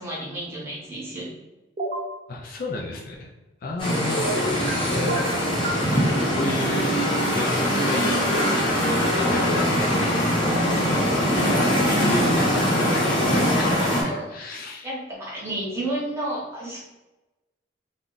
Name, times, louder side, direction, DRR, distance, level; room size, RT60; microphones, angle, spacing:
voice 1, 0.0-1.3 3.7-4.0 4.3-4.5 6.1-6.2 10.6-11.2 13.7-14.3 14.8-16.8, right 1 dB, 15° right, -6 dB, 0.9 m, -32 dB
sound 1, 1.8-2.1 4.2-4.8 5.1-5.9, right 2 dB, 40° right, 0.4 m, -29 dB
voice 2, 2.3-3.3 3.6-4.3 4.9-5.5 5.9-7.0 7.3-8.2 8.5-14.9, left 2 dB, 45° left, 0 dB, 0.3 m, -32 dB
sound 2, 3.8-14.0, equal, 25° left, 0.7 m, -22 dB
2.3 x 2.0 x 3.8 m, 1.0 s
head